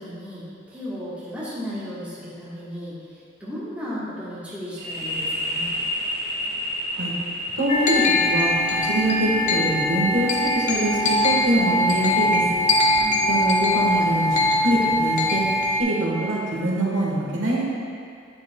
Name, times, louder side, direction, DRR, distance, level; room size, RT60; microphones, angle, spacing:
voice 1, 0.0-5.7 12.8-13.2, equal, 5° right, -10 dB, 1.4 m, -35 dB
sound 1, 4.8-12.2, left 1 dB, 40° right, 1.6 m, -32 dB
voice 2, 7.6-8.5 8.8-12.4 13.3-15.4 15.8-17.6, right 1 dB, 80° right, -5 dB, 1.4 m, -24 dB
sound 2, 7.7-15.8, left 1 dB, 40° left, 0.6 m, -22 dB
9.6 x 6.4 x 2.3 m, 2.3 s
head